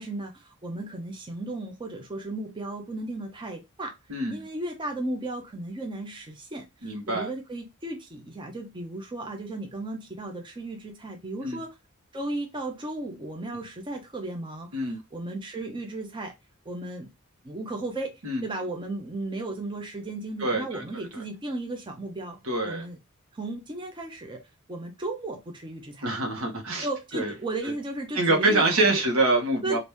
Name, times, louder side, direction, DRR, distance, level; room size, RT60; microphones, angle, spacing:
voice 1, 0.0-3.9 4.3-11.7 12.1-16.3 16.6-17.1 17.4-18.1 18.4-22.4 22.6-23.0 23.3-24.4 24.7-26.1 26.8-29.0 29.6-29.8, right 2 dB, 20° right, 0.6 m, -35 dB
voice 2, 4.1-4.5 6.8-7.3 11.4-11.6 14.7-15.0 18.2-18.4 20.4-20.8 22.5-22.9 26.0-26.9 27.1-27.3 28.1-29.8, right 2 dB, 70° right, 1.2 m, -25 dB
2.9 x 2.6 x 3.4 m
head